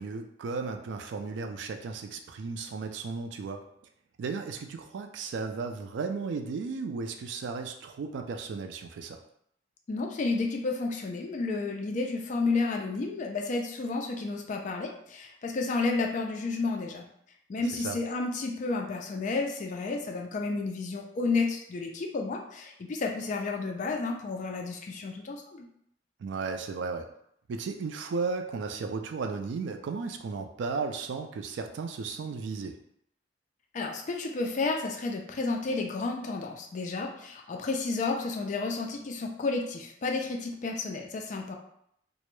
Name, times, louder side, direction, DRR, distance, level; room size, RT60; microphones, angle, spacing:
voice 1, 0.0-3.6 4.2-9.2 17.7-18.0 26.2-27.1 27.5-32.8, right 4 dB, 75° right, 5 dB, 0.3 m, -35 dB
voice 2, 9.9-17.0 17.5-25.7 33.7-41.6, left 3 dB, 40° left, 2 dB, 0.3 m, -31 dB
2.1 x 2.0 x 3.0 m, 0.72 s
head